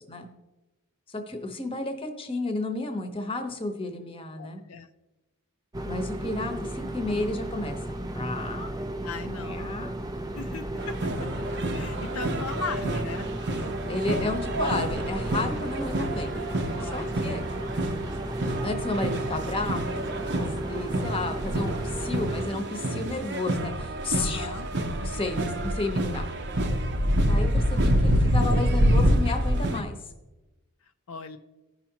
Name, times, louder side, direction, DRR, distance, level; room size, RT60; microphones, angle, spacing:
voice 1, 1.1-4.6 5.8-8.7 9.4-9.9 13.9-16.3 16.8-17.5 18.6-24.6 25.0-25.4 25.6-26.3 27.3-30.0, left 2 dB, 25° left, 6 dB, 1.0 m, -32 dB
voice 2, 4.4-4.9 9.0-9.7 10.3-11.0 11.7-13.3 16.8-17.2 24.1-24.7 31.1-31.4, left 4 dB, 70° left, 6 dB, 0.5 m, -37 dB
sound 1, 5.7-22.5, right 1 dB, 15° right, 0.5 m, -34 dB
sound 2, 10.8-29.8, equal, 50° right, 0.8 m, -27 dB
16.0 x 5.7 x 2.9 m, 1.1 s
head